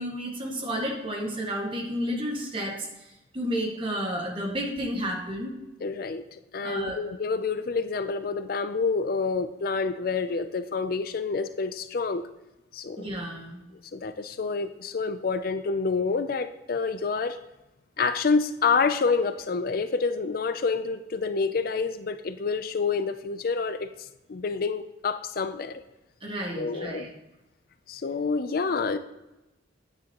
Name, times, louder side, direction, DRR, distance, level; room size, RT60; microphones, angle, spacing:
voice 1, 0.0-2.9 3.3-5.5 6.6-7.0 13.0-13.6 26.2-27.1, equal, 30° right, 0 dB, 1.7 m, -31 dB
voice 2, 5.8-6.2 6.5-12.2 12.7-13.1 13.9-17.4 18.0-23.9 24.3-25.8 26.6-27.1 27.9-29.0, left 4 dB, 55° left, 11 dB, 0.5 m, -28 dB
9.5 x 8.9 x 3.0 m, 0.97 s
head